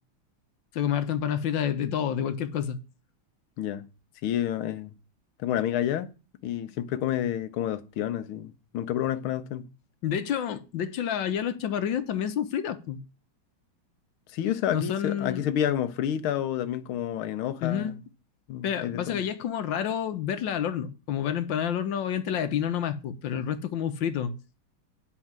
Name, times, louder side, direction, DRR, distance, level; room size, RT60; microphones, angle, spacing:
voice 1, 0.7-2.8 10.0-13.0 14.7-15.5 17.6-18.0 18.6-24.3, left 9 dB, 70° left, 1.5 m, -29 dB
voice 2, 4.2-4.9 5.4-6.1 6.4-9.7 14.3-18.0 18.5-19.2, left 10 dB, 85° left, 1.7 m, -29 dB
9.8 x 4.5 x 7.3 m
omnidirectional pair, 2.2 m